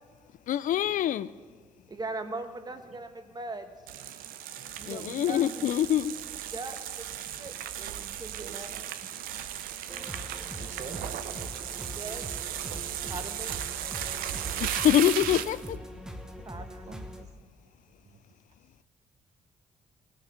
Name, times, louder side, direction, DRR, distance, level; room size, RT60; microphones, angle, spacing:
voice 1, 0.5-1.3 4.9-6.1 14.6-15.8, left 11 dB, 65° left, 16 dB, 0.4 m, -25 dB
voice 2, 1.9-3.7 4.8-5.4 6.5-7.1 7.4-8.7 11.7-12.2 13.1-13.6 16.4-16.8, right 2 dB, 30° right, 7 dB, 1.2 m, -40 dB
sound 1, 3.9-15.7, right 11 dB, 90° right, 0.5 m, -36 dB
voice 3, 4.7-5.7 8.0-9.1 10.6-11.1 15.3-15.7 16.6-17.3 18.0-18.2, right 5 dB, 50° right, 7 dB, 1.1 m, -48 dB
sound 2, 9.9-17.2, equal, 5° right, 1.2 m, -42 dB
17.0 x 6.2 x 5.7 m, 1.5 s
supercardioid pair, 65°, 14 cm